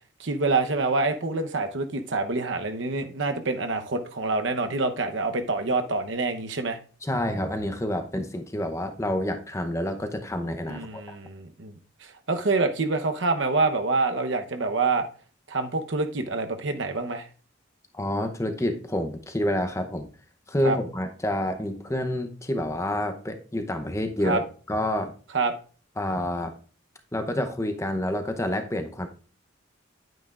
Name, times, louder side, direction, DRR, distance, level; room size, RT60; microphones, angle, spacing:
voice 1, 0.2-6.8 10.7-11.7 12.3-15.1 15.5-17.3 20.6-20.8 24.2-24.4 25.3-25.5, right 3 dB, 65° right, 6 dB, 0.9 m, -26 dB
voice 2, 7.0-11.0 17.9-20.1 20.5-24.4 24.7-25.1 26.0-26.5 27.1-29.1, left 1 dB, 15° left, 7 dB, 0.7 m, -28 dB
10.5 x 9.1 x 2.4 m, 0.39 s
head